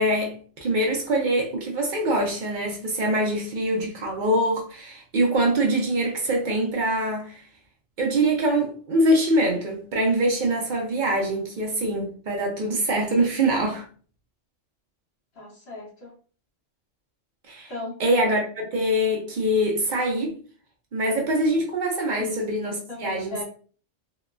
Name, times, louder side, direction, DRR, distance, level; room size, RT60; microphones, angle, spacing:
voice 1, 0.0-7.4 8.0-13.9 17.5-17.7 18.0-20.4 20.9-23.4, right 1 dB, 55° right, 0.5 m, -24 dB
voice 2, 15.3-16.1 17.7-18.0 22.2-22.4 22.9-23.4, left 2 dB, 55° left, 1.1 m, -36 dB
2.9 x 2.0 x 2.3 m
omnidirectional pair, 1.3 m